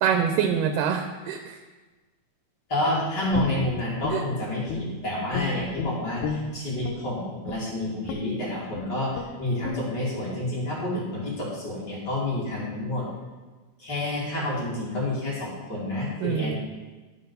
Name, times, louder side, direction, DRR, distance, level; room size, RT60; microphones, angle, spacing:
voice 1, 0.0-1.4 4.1-4.2 16.2-16.6, right 7 dB, 90° right, 6 dB, 2.3 m, -25 dB
voice 2, 2.7-13.1 13.8-16.6, left 1 dB, 35° left, -7 dB, 3.0 m, -29 dB
Guitar, 3.3-5.0 5.3-7.0 7.4-7.7 8.1-8.3 8.7-8.9 9.1-9.3 9.6-9.8, left 5 dB, 75° left, 1.9 m, -32 dB
11.0 x 6.3 x 5.5 m, 1.3 s
omnidirectional pair, 3.8 m